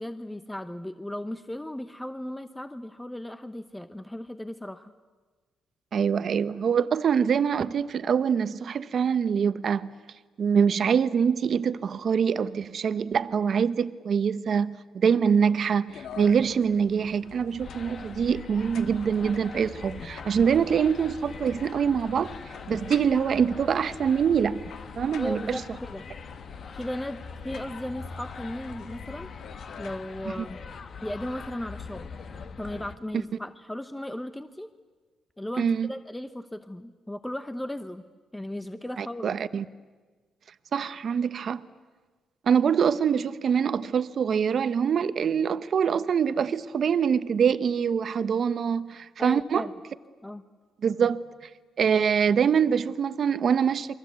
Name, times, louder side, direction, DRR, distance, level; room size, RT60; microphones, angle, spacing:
voice 1, 0.0-4.9 25.2-26.0 26.7-29.3 29.8-30.6 31.0-32.1 32.6-34.7 35.4-38.0 38.3-39.4 49.2-49.7 50.2-50.4, left 1 dB, 5° left, 0.8 m, -36 dB
voice 2, 5.9-9.9 10.4-22.3 22.7-24.6 25.0-25.6 30.4-30.5 35.6-35.9 39.0-39.6 40.7-41.6 42.5-49.7 50.8-51.2 51.8-53.9, right 7 dB, 50° right, 0.9 m, -24 dB
sound 1, 15.9-29.9, left 7 dB, 80° left, 1.4 m, -48 dB
sound 2, 17.6-32.9, left 5 dB, 45° left, 1.5 m, -42 dB
29.0 x 23.0 x 8.2 m
cardioid pair, 120°, 0 cm